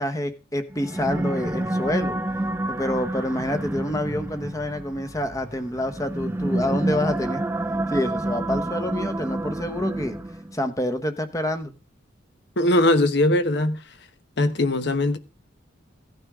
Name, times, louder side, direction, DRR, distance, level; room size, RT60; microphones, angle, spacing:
voice 1, 0.0-2.2 2.7-7.4 7.9-10.2 10.5-11.7, left 1 dB, 15° left, 1.0 m, -27 dB
sound 1, 0.7-10.6, right 1 dB, 10° right, 0.5 m, -28 dB
voice 2, 12.6-13.8 14.4-15.2, left 1 dB, 55° left, 1.1 m, -20 dB
16.5 x 9.4 x 3.7 m
head